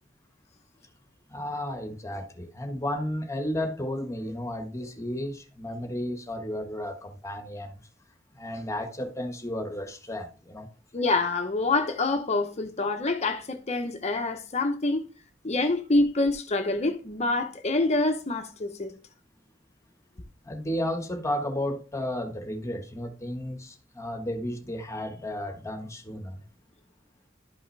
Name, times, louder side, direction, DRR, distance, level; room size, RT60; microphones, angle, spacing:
voice 1, 1.3-7.8 8.3-10.7 20.4-26.4, left 1 dB, 15° left, 1.4 m, -33 dB
voice 2, 10.9-15.0 15.4-18.9, left 2 dB, 35° left, 0.8 m, -26 dB
12.0 x 5.6 x 3.3 m
head